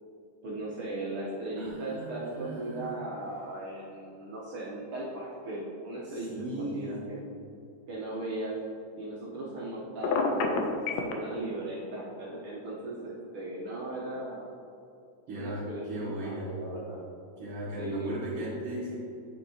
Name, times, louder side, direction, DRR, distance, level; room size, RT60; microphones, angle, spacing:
voice 1, 0.4-6.3 6.6-7.2 7.9-8.6 9.0-14.5 15.3-17.0 17.8-18.5, right 2 dB, 80° right, -6 dB, 1.2 m, -37 dB
voice 2, 1.6-2.9 6.0-7.1 15.3-16.6 17.4-19.0, right 1 dB, 55° right, -9 dB, 1.7 m, -37 dB
Telephone, 10.0-11.1, left 4 dB, 80° left, 1.6 m, -26 dB
9.0 x 5.5 x 2.8 m, 2.8 s
omnidirectional pair, 3.8 m